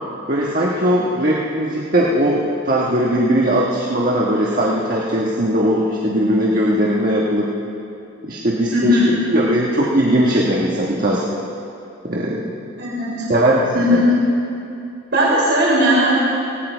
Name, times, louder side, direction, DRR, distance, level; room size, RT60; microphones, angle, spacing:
voice 1, 0.3-7.5 8.2-11.2 12.0-12.5 13.3-14.0, right 1 dB, 45° right, -4 dB, 1.4 m, -19 dB
voice 2, 8.7-9.1 12.8-13.2 13.7-14.1 15.1-16.1, equal, 65° right, -6 dB, 3.6 m, -16 dB
18.0 x 17.0 x 4.6 m, 2.7 s
head